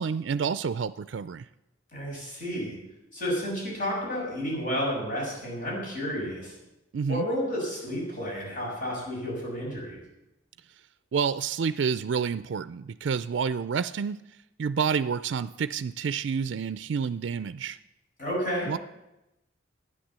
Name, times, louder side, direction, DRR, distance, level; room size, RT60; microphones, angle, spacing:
voice 1, 0.0-1.5 6.9-7.3 11.1-14.2 14.6-17.8 18.7-18.8, right 6 dB, 70° right, 14 dB, 0.4 m, -29 dB
voice 2, 1.9-2.8 3.1-6.5 7.1-10.0 18.2-18.7, equal, 45° left, -4 dB, 6.8 m, -31 dB
13.0 x 9.8 x 7.4 m, 0.94 s
head